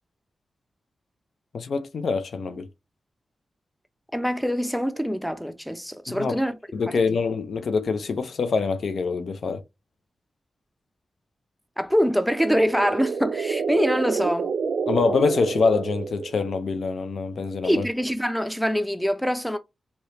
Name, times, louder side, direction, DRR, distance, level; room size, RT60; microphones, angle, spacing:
voice 1, 1.5-2.7 6.1-6.4 6.7-9.6 14.9-17.8, left 4 dB, 70° left, 0.4 m, -25 dB
voice 2, 4.1-6.6 6.9-7.0 11.8-14.5 17.6-19.6, equal, ahead, 0.6 m, -24 dB
sound 1, 12.4-16.6, right 5 dB, 80° right, 0.3 m, -28 dB
3.2 x 2.8 x 2.9 m
cardioid pair, 65°, 0 cm